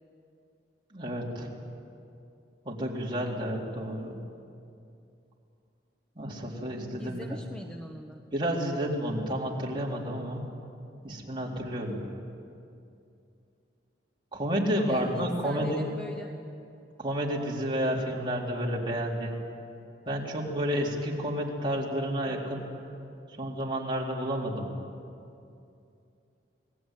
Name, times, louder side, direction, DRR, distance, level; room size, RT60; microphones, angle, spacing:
voice 1, 0.9-1.5 2.6-4.2 6.2-7.4 8.3-10.4 11.0-12.1 14.3-15.8 17.0-19.4 20.1-22.7 23.4-24.7, equal, 30° right, -3 dB, 4.0 m, -30 dB
voice 2, 7.0-8.2 14.9-16.3, equal, 5° left, 2 dB, 1.1 m, -41 dB
28.0 x 19.5 x 9.3 m, 2.6 s
head